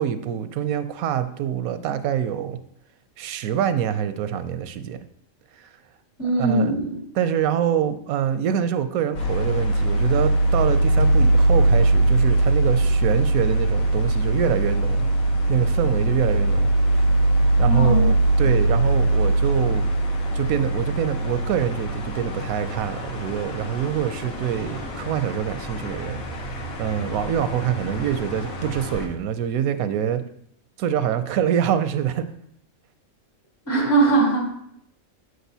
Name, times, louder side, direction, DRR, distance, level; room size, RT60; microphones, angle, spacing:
voice 1, 0.0-2.6 3.2-5.0 5.6-5.7 6.4-6.8 7.1-15.1 15.5-17.1 17.6-19.9 20.3-26.2 26.8-30.2 30.8-32.3, right 9 dB, 85° right, 11 dB, 1.0 m, -25 dB
voice 2, 6.2-6.9 17.6-18.1 33.7-34.6, right 3 dB, 60° left, -4 dB, 2.9 m, -20 dB
sound 1, 9.1-29.0, right 2 dB, 80° left, 1.5 m, -22 dB
8.0 x 6.2 x 2.7 m, 0.70 s
omnidirectional pair, 1.4 m